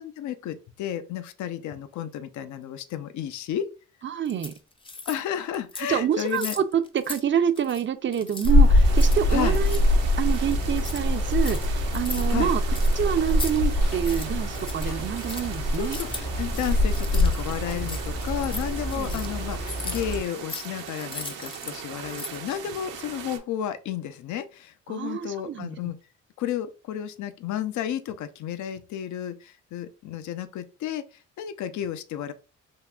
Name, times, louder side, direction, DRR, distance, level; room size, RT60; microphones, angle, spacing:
voice 1, 0.0-3.7 5.1-6.6 9.3-9.6 12.3-12.5 15.7-26.0 26.4-31.0 31.4-32.3, left 10 dB, 65° left, 0.5 m, -32 dB
voice 2, 4.0-4.5 5.9-9.8 10.2-12.6 13.0-16.0 18.9-19.2 24.9-25.8, right 9 dB, 40° right, 0.5 m, -27 dB
sound 1, 4.2-5.2 5.5-5.9 6.2-7.2 7.5-7.8 8.1-13.6 13.8-21.8 22.0-22.5, left 3 dB, 15° left, 0.5 m, -39 dB
sound 2, 8.4-20.2, left 1 dB, 85° left, 1.3 m, -24 dB
sound 3, 8.8-23.4, right 8 dB, 75° right, 0.7 m, -40 dB
3.7 x 2.8 x 2.3 m
supercardioid pair, 65°, 32 cm